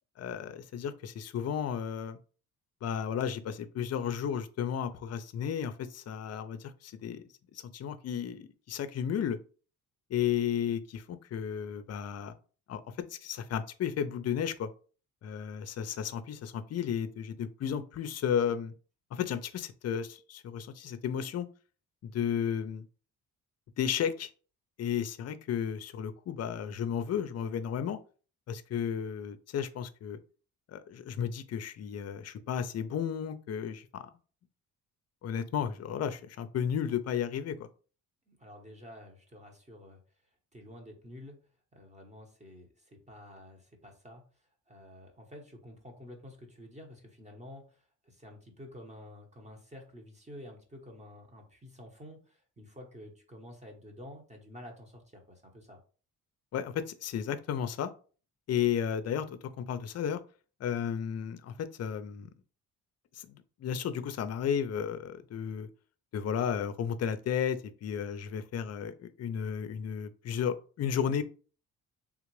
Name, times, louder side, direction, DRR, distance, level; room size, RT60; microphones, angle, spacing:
voice 1, 0.2-2.2 2.8-7.2 7.5-9.4 10.1-12.3 12.7-12.8 13.1-14.7 15.2-18.7 19.1-21.5 22.0-22.8 23.8-24.3 24.8-28.0 28.5-30.2 30.7-34.1 35.2-37.7 56.5-57.9 58.5-60.2 60.6-62.3 63.1-65.7 66.1-71.2, left 8 dB, 45° left, 12 dB, 0.5 m, -33 dB
voice 2, 38.3-40.0 40.5-41.4 41.7-55.8, left 1 dB, 20° right, 2 dB, 1.0 m, -50 dB
3.5 x 2.4 x 3.1 m, 0.38 s
cardioid pair, 80°, 35 cm